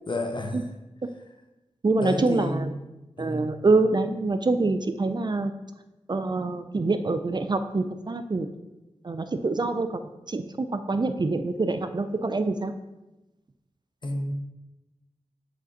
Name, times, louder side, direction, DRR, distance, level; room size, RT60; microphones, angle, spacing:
voice 1, 0.1-0.6 2.0-2.6 3.2-3.5 14.0-14.2, left 2 dB, 40° left, 4 dB, 1.0 m, -30 dB
voice 2, 1.8-2.7 3.2-5.5 6.1-8.5 9.0-10.0 10.3-12.7, right 3 dB, 40° right, 9 dB, 0.5 m, -25 dB
5.0 x 3.8 x 5.8 m, 1.0 s
cardioid pair, 40°, 12 cm